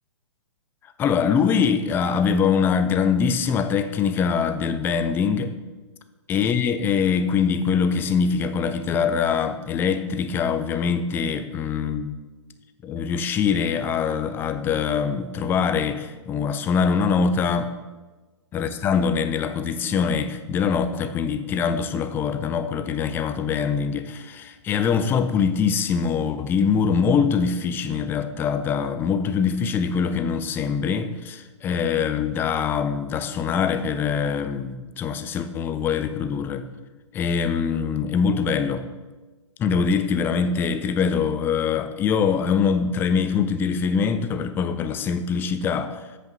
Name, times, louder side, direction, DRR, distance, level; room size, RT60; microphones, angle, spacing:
voice 1, 1.0-5.5 6.3-12.2 12.8-17.7 18.5-36.7 37.1-38.9 39.6-46.0, left 6 dB, 15° left, 10 dB, 0.4 m, -23 dB
13.0 x 8.2 x 2.7 m, 1.2 s
figure-of-eight pair, 120°, 16 cm